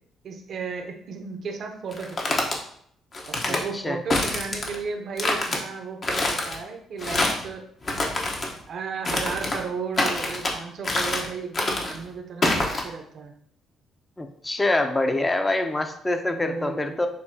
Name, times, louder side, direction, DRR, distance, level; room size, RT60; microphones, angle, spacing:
voice 1, 0.2-2.6 3.2-7.6 8.7-13.3 16.3-17.1, right 5 dB, 60° right, 4 dB, 0.8 m, -34 dB
sound 1, 1.9-2.6 3.1-3.6 4.1-4.8 5.2-5.6 6.0-6.6 7.0-7.5 7.8-8.5 9.0-9.6 9.9-10.5 10.8-11.3 11.5-12.0 12.4-12.8, left 2 dB, 45° left, 1.0 m, -26 dB
voice 2, 3.4-4.0 14.2-17.1, left 2 dB, 20° left, 6 dB, 0.7 m, -25 dB
6.8 x 2.8 x 2.8 m, 0.64 s
supercardioid pair, 65°, 0 cm